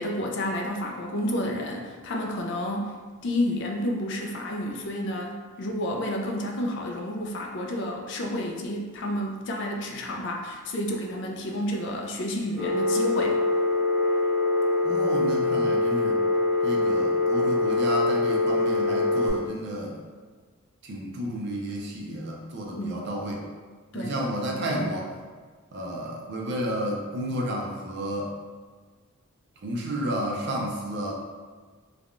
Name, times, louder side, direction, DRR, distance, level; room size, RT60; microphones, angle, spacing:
voice 1, 0.0-3.0 3.2-13.4 22.7-23.1 23.9-24.2, left 1 dB, 55° left, 1 dB, 0.4 m, -30 dB
Telephone, 12.6-19.3, left 2 dB, ahead, 0.9 m, -24 dB
voice 2, 14.8-16.2 16.6-20.0 20.8-23.4 23.9-25.1 25.7-28.3 29.6-31.1, equal, 50° right, -1 dB, 0.5 m, -31 dB
3.3 x 2.2 x 2.4 m, 1.5 s
head